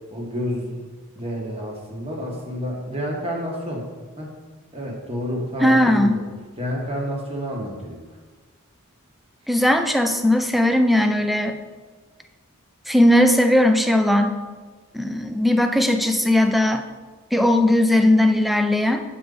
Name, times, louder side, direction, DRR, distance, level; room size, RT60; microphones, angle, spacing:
voice 1, 0.1-0.8 1.1-3.8 4.2-4.3 4.7-6.1 6.6-8.0, equal, 30° right, -1 dB, 1.3 m, -29 dB
voice 2, 5.6-6.2 9.5-11.6 12.9-14.4 14.9-16.8 17.3-19.0, left 1 dB, ahead, 7 dB, 0.3 m, -18 dB
8.3 x 4.3 x 3.9 m, 1.4 s
head